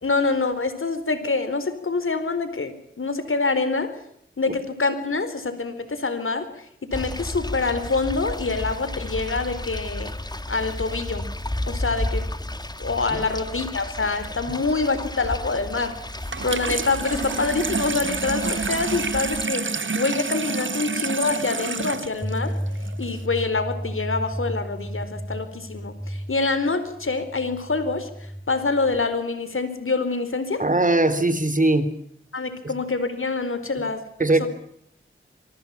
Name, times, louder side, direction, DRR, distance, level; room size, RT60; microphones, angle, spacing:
voice 1, 0.0-3.9 4.4-10.1 10.5-11.3 11.7-12.3 12.8-16.0 16.4-22.5 23.0-30.6 32.3-34.5, left 3 dB, 75° left, 11 dB, 4.3 m, -26 dB
sound 1, 6.9-19.4, left 1 dB, 20° left, 1.8 m, -32 dB
Water tap faucet / Sink (filling or washing), 16.2-23.2, right 4 dB, 65° right, 1.5 m, -29 dB
sound 2, 22.2-29.0, equal, 10° right, 2.4 m, -33 dB
voice 2, 30.6-31.9 32.6-32.7 34.2-34.5, right 2 dB, 40° right, 13 dB, 3.6 m, -20 dB
26.5 x 24.5 x 5.9 m, 0.71 s
wide cardioid pair, 45°, 21 cm